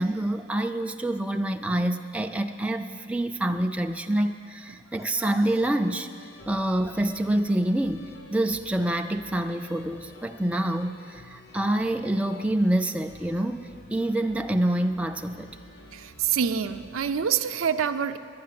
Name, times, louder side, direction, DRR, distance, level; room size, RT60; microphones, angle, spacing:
voice 1, 0.0-6.1 6.5-15.5, right 1 dB, 5° right, 4 dB, 0.3 m, -27 dB
sound 1, 5.0-17.3, left 1 dB, 55° left, 0.9 m, -50 dB
voice 2, 15.9-18.2, right 7 dB, 90° right, 9 dB, 0.5 m, -26 dB
10.0 x 10.0 x 7.5 m, 2.2 s
head